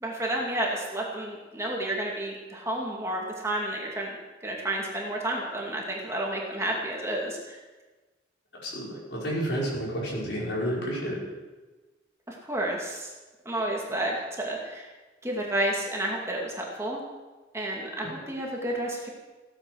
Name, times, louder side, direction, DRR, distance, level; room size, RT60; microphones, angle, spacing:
voice 1, 0.0-4.1 4.4-7.6 12.3-13.1 13.5-14.9 15.2-17.0 17.5-19.1, right 1 dB, 15° right, -2 dB, 2.3 m, -31 dB
voice 2, 8.6-11.2, equal, 75° left, -5 dB, 5.5 m, -30 dB
16.0 x 9.1 x 6.3 m, 1.2 s
head